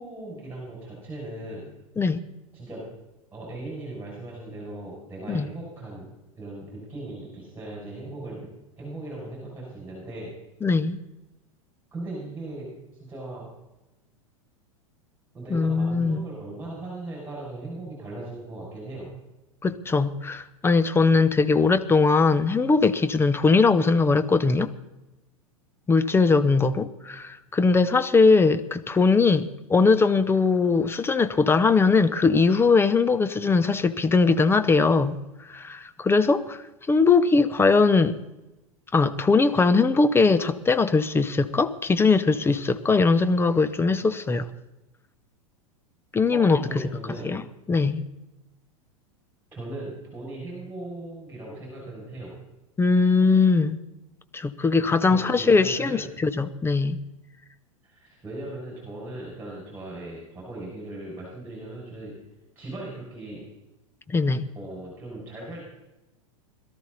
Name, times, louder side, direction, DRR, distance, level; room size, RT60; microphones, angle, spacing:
voice 1, 0.0-1.7 2.5-2.8 3.3-8.5 8.8-10.3 11.9-12.7 13.0-13.5 15.3-19.1 46.3-47.3 49.5-52.4 55.1-56.1 57.8-62.2 62.5-63.4 64.5-65.7, right 2 dB, 10° right, 6.5 m, -38 dB
voice 2, 10.6-11.0 15.5-16.3 19.6-24.7 25.9-36.6 36.9-38.2 38.9-44.5 46.1-46.6 47.2-47.4 47.7-48.0 52.8-53.8 54.3-57.0 64.1-64.4, left 4 dB, 15° left, 0.8 m, -20 dB
22.0 x 13.0 x 4.2 m
figure-of-eight pair, 90°, 18 cm